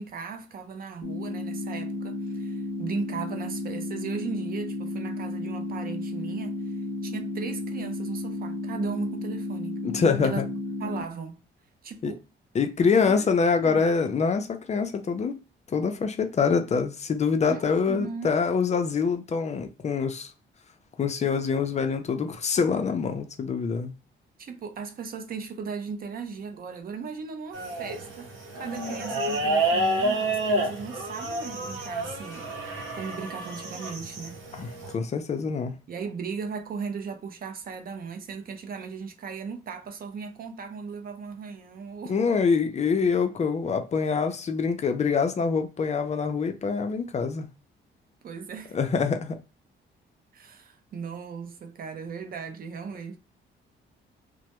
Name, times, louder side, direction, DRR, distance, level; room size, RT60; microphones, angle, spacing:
voice 1, 0.0-6.7 7.0-9.8 10.2-10.4 10.8-11.4 11.8-12.2 13.0-13.3 13.6-13.9 17.5-18.4 24.4-28.3 28.6-34.4 35.9-42.1 48.2-48.8 50.3-53.2, right 5 dB, 45° right, 0.5 m, -37 dB
sound 1, 1.0-11.0, left 2 dB, 15° left, 0.9 m, -33 dB
voice 2, 9.8-10.5 12.0-12.1 12.5-15.4 15.7-20.3 21.0-23.9 34.5-35.7 42.1-47.5 48.7-49.4, left 5 dB, 35° left, 0.4 m, -25 dB
sound 2, 27.5-34.9, right 1 dB, 85° right, 0.8 m, -29 dB
2.1 x 2.0 x 2.9 m
cardioid pair, 90°, 20 cm